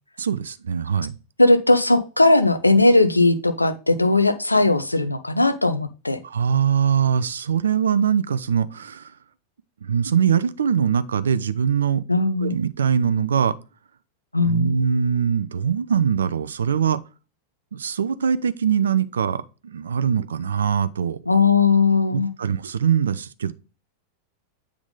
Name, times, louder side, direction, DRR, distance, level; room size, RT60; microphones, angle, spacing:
voice 1, 0.2-1.2 6.2-9.1 9.8-12.0 12.4-13.6 14.4-17.0 17.7-21.2 22.1-23.5, right 7 dB, 70° right, 0.5 m, -22 dB
voice 2, 1.4-6.2 12.1-12.5 14.3-14.7 21.3-22.3, left 3 dB, 85° left, 0.7 m, -18 dB
7.9 x 3.6 x 3.8 m
figure-of-eight pair, 90°, 0 cm